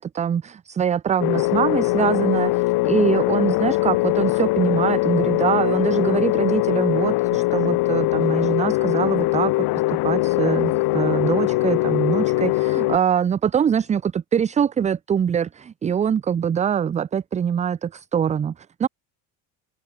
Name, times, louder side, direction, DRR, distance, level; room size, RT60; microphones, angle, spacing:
voice 1, 0.0-9.5 9.9-18.9, right 8 dB, 20° right, 0.3 m, -23 dB
sound 1, 1.2-13.0, left 20 dB, 60° left, 0.6 m, -21 dB
open air
supercardioid pair, 80°, 42 cm